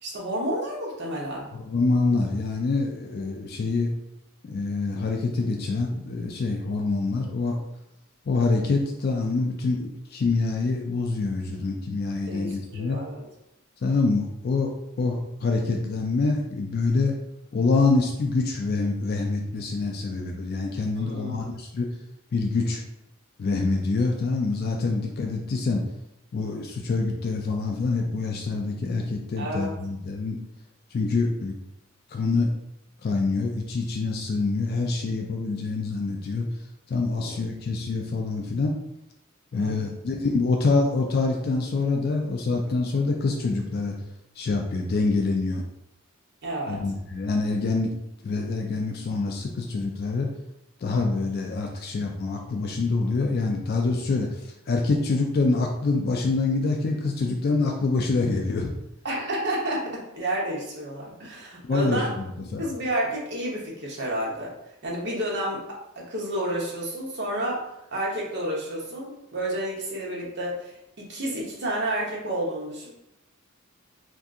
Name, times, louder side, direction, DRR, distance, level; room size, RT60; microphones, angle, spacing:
voice 1, 0.0-1.5 12.3-13.2 21.0-21.5 29.4-29.7 37.1-37.4 39.5-39.9 46.4-46.8 59.0-62.2 62.6-64.5 64.8-72.9, right 1 dB, 55° right, -4 dB, 1.0 m, -30 dB
voice 2, 1.5-3.9 4.4-7.6 8.3-13.0 13.8-14.7 15.0-17.2 17.5-21.9 22.3-22.8 23.4-25.8 26.3-30.4 30.9-31.5 32.1-32.5 33.0-36.5 36.9-38.7 39.5-44.0 44.4-45.6 46.7-47.9 48.2-50.3 50.8-58.7 61.6-62.3 62.5-62.6, left 3 dB, 50° left, 1 dB, 0.3 m, -26 dB
2.6 x 2.5 x 3.6 m, 0.84 s
head